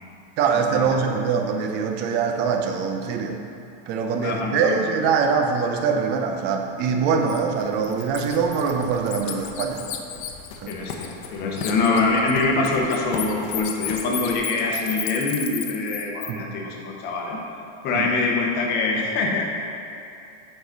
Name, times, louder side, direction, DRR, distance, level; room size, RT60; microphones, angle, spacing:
voice 1, 0.4-3.4 3.9-10.0 10.6-10.7 11.6-11.7 16.3-16.5 17.9-18.1, right 5 dB, 35° right, 4 dB, 0.6 m, -23 dB
voice 2, 4.2-4.7 10.7-17.4 17.8-19.4, left 3 dB, 35° left, 0 dB, 1.0 m, -24 dB
sound 1, 6.8-15.3, left 4 dB, 80° left, 1.0 m, -40 dB
Bird, 7.3-7.4 7.8-11.3 11.6-16.3, left 12 dB, 55° left, 0.6 m, -33 dB
7.5 x 5.0 x 3.9 m, 2.7 s
supercardioid pair, 155°, 30 cm